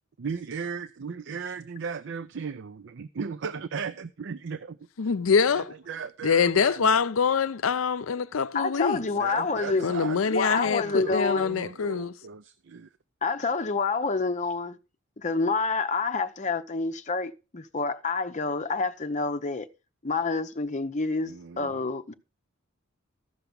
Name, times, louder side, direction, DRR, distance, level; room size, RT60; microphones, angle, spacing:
voice 1, 0.2-4.9 5.5-6.9 9.1-10.2 10.5-12.9 21.2-21.8, right 6 dB, 60° right, 0.5 m, -36 dB
voice 2, 5.0-5.7 6.2-9.0 9.8-12.1, left 5 dB, 80° left, 0.6 m, -24 dB
voice 3, 8.5-9.9 10.3-11.5 13.2-14.8 15.2-19.7 20.0-22.1, left 4 dB, 35° left, 0.8 m, -28 dB
14.5 x 5.9 x 5.2 m
head